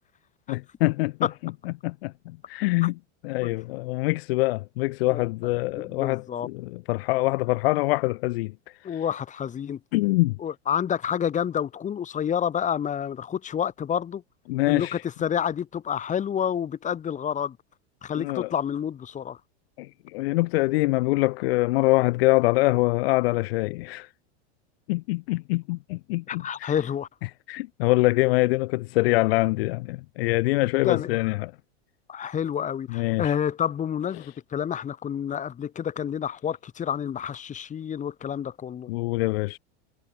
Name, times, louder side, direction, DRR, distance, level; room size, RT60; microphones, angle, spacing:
voice 1, 0.5-1.1 1.4-1.5 1.8-2.9 3.2-9.0 9.9-10.4 14.5-15.0 18.2-18.5 19.8-24.1 24.9-26.7 27.5-31.5 32.9-33.3 34.1-34.3 38.9-39.6, left 22 dB, 55° left, 1.1 m, -24 dB
voice 2, 5.8-6.5 8.8-9.8 10.4-14.2 14.7-17.6 18.0-19.4 26.3-27.1 30.8-31.1 32.1-38.9, left 8 dB, 20° left, 4.4 m, -29 dB
supercardioid pair, 145°, 35 cm